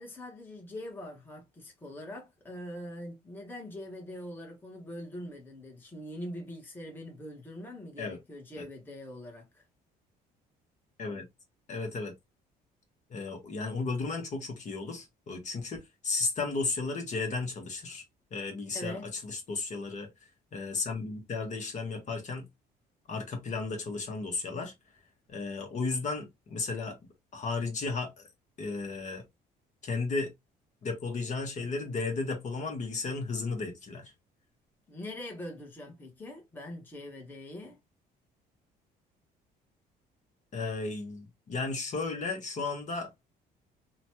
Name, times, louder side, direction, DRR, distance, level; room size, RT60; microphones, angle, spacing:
voice 1, 0.0-9.6 18.7-19.1 34.9-37.8, left 1 dB, 10° left, 1.0 m, -43 dB
voice 2, 11.7-12.1 13.1-15.8 16.0-18.0 18.3-20.1 20.5-22.5 23.1-24.7 25.3-27.0 27.3-28.3 28.6-29.2 29.8-30.3 30.8-34.1 40.5-43.2, left 3 dB, 45° left, 1.1 m, -34 dB
2.9 x 2.2 x 2.9 m
cardioid pair, 110°, 17 cm